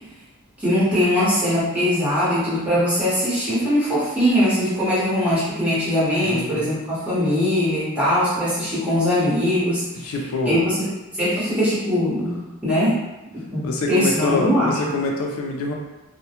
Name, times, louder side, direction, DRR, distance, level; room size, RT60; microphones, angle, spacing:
voice 1, 0.6-10.1 10.4-10.9 11.1-13.0 13.3-14.7, equal, 5° right, -12 dB, 0.9 m, -21 dB
voice 2, 6.2-6.7 10.0-10.7 13.6-15.7, left 3 dB, 85° left, 1 dB, 0.4 m, -25 dB
2.2 x 2.1 x 2.8 m, 1.0 s
head